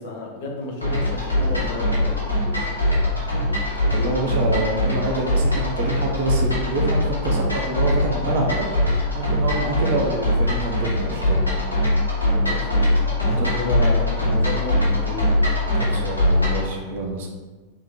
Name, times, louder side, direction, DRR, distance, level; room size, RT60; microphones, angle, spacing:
voice 1, 0.0-2.2 12.3-15.3, left 3 dB, 50° left, 0 dB, 0.9 m, -31 dB
sound 1, 0.8-16.7, left 1 dB, 90° right, 1.3 m, -22 dB
voice 2, 3.9-8.7 9.1-11.4 13.4-13.5 15.7-17.3, right 2 dB, 55° right, 0 dB, 0.8 m, -26 dB
3.6 x 3.1 x 4.5 m, 1.3 s
figure-of-eight pair, 90°, 0 cm